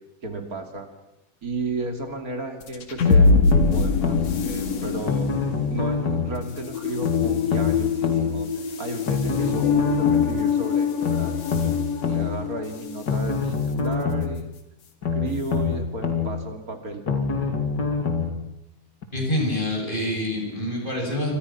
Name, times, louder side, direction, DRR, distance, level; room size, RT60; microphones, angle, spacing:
voice 1, 0.2-0.9 1.4-5.3 5.7-8.5 8.8-11.7 12.1-14.4 15.1-17.3, right 2 dB, 30° right, 5 dB, 2.9 m, -33 dB
sound 1, 2.6-13.1, left 5 dB, 55° left, 3.3 m, -24 dB
sound 2, 3.1-4.3 5.1-6.3 7.0-8.3 9.1-10.3 11.0-12.3 13.1-14.3 15.0-16.3 17.1-18.3 19.0-19.1, left 5 dB, 35° left, 2.9 m, -25 dB
voice 2, 19.1-21.4, left 1 dB, 15° left, 0 dB, 7.5 m, -26 dB
28.0 x 25.0 x 6.0 m, 0.87 s
omnidirectional pair, 3.7 m